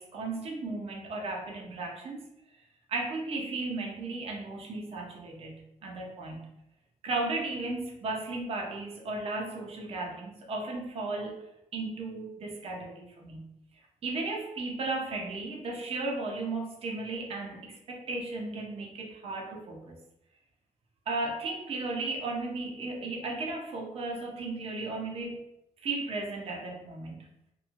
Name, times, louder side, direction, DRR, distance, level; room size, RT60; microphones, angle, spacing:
voice 1, 0.0-2.3 2.9-6.4 7.0-11.4 11.7-13.4 14.0-20.0 21.1-25.4 25.8-27.2, right 3 dB, 50° right, 0 dB, 0.7 m, -35 dB
3.0 x 2.5 x 2.5 m, 0.81 s
cardioid pair, 125°, 13 cm